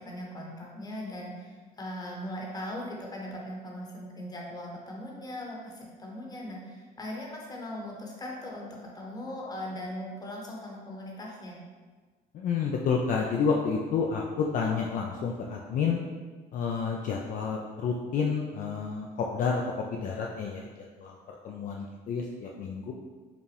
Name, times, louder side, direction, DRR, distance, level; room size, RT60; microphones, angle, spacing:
voice 1, 0.0-11.6, left 1 dB, 25° left, -2 dB, 0.9 m, -39 dB
voice 2, 12.3-16.0 16.5-19.6 19.9-20.7 21.0-22.9, left 5 dB, 50° left, -1 dB, 0.4 m, -30 dB
4.8 x 2.4 x 3.3 m, 1.4 s
cardioid pair, 110°, 17 cm